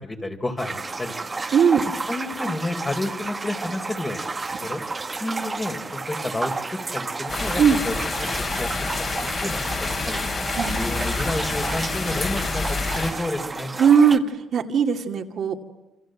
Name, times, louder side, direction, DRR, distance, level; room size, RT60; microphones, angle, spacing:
voice 1, 0.0-1.1 2.1-4.8 5.2-8.7 9.4-10.2 10.6-13.7, left 2 dB, 20° left, 5 dB, 4.1 m, -30 dB
sound 1, 0.6-14.2, right 3 dB, 25° right, 1.6 m, -32 dB
voice 2, 1.5-1.8 7.6-7.8 10.6-10.8 13.8-14.3 14.5-15.5, right 7 dB, 60° right, 4 dB, 2.4 m, -18 dB
sound 2, 7.3-13.1, left 4 dB, 45° left, 7.6 m, -28 dB
28.0 x 26.0 x 7.9 m, 1.0 s
cardioid pair, 90°, 0 cm